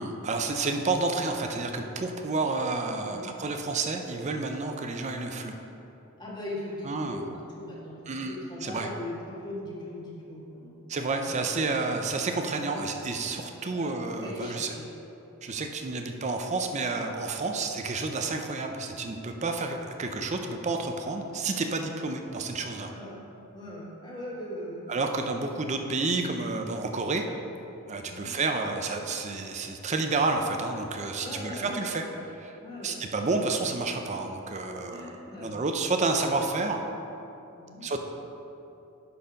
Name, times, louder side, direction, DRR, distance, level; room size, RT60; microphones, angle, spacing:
voice 1, 0.0-5.6 6.8-7.2 8.1-8.9 10.9-14.7 15.4-22.9 24.9-27.2 27.9-36.8 37.8-38.0, right 3 dB, 35° right, 4 dB, 0.5 m, -30 dB
voice 2, 3.0-3.3 6.2-11.8 12.7-12.8 13.7-13.9 14.2-14.8 22.9-23.2 23.5-25.0 28.0-28.3 31.2-31.8 32.6-33.0 34.9-35.6 37.5-37.9, left 1 dB, 20° left, -5 dB, 1.7 m, -40 dB
11.0 x 4.4 x 5.1 m, 2.9 s
head